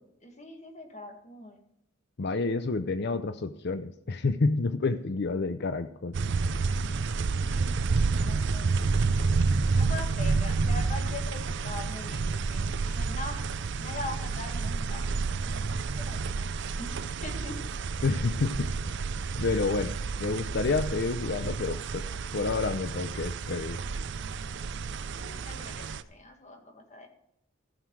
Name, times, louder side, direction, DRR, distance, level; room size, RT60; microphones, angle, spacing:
voice 1, 0.2-1.6 7.4-8.7 9.7-15.1 15.4-16.5 16.8-17.6 25.1-27.1, left 2 dB, 35° left, 3 dB, 1.8 m, -42 dB
voice 2, 2.2-6.1 18.0-18.7 19.4-19.9 20.2-22.0 22.3-23.8, left 3 dB, 50° left, 11 dB, 0.6 m, -29 dB
sound 1, 6.1-26.0, right 4 dB, 55° right, 0.5 m, -30 dB
15.0 x 6.5 x 4.7 m, 0.79 s
head